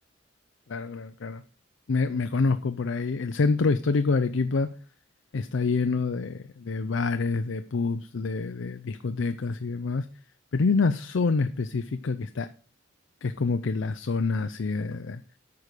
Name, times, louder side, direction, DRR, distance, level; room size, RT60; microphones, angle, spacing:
voice 1, 0.7-1.4 1.9-4.7 5.3-10.1 10.5-12.5 13.2-15.2, left 4 dB, 70° left, 0.5 m, -27 dB
8.6 x 4.9 x 6.6 m
head